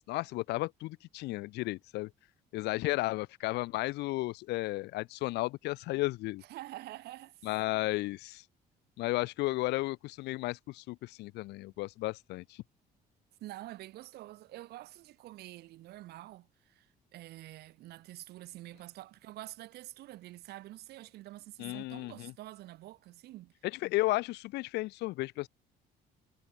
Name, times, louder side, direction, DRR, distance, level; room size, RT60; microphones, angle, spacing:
voice 1, 0.1-2.1 2.5-6.4 7.4-8.4 9.0-12.6 21.6-22.3 23.7-25.5, left 20 dB, 85° left, 0.7 m, -33 dB
voice 2, 6.4-7.5 13.4-23.5, right 16 dB, 75° right, 0.9 m, -47 dB
cardioid pair, 110°, 17 cm